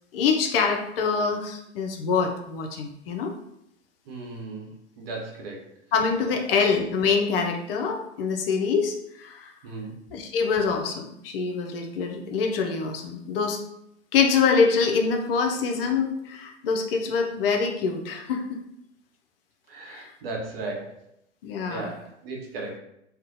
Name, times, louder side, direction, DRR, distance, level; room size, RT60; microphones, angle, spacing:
voice 1, 0.1-3.3 5.9-9.5 10.1-13.6 14.1-18.6 19.9-20.1 21.4-21.9, left 5 dB, 55° left, 3 dB, 0.5 m, -25 dB
voice 2, 4.1-5.6 9.6-9.9 19.7-21.0 21.7-22.8, right 3 dB, 55° right, 0 dB, 0.8 m, -36 dB
2.4 x 2.0 x 2.6 m, 0.77 s
figure-of-eight pair, 100°, 35 cm